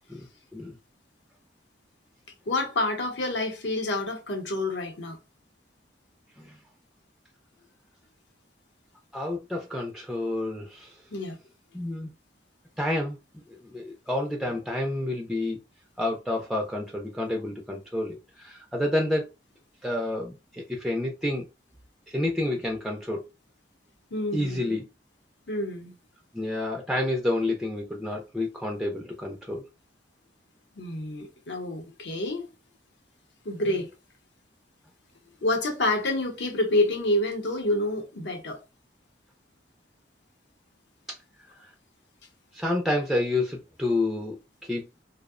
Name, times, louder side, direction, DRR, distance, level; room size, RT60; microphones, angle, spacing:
voice 1, 2.5-5.2 11.1-11.4 24.1-24.8 25.5-26.0 30.8-32.5 33.4-33.9 35.4-38.6, left 2 dB, 75° left, 0.7 m, -28 dB
voice 2, 9.1-11.0 11.7-12.1 12.8-13.2 13.6-15.6 16.0-19.3 19.8-21.5 22.1-23.2 24.3-24.8 26.3-29.6 42.5-44.9, left 1 dB, ahead, 0.3 m, -29 dB
2.6 x 2.0 x 2.4 m
head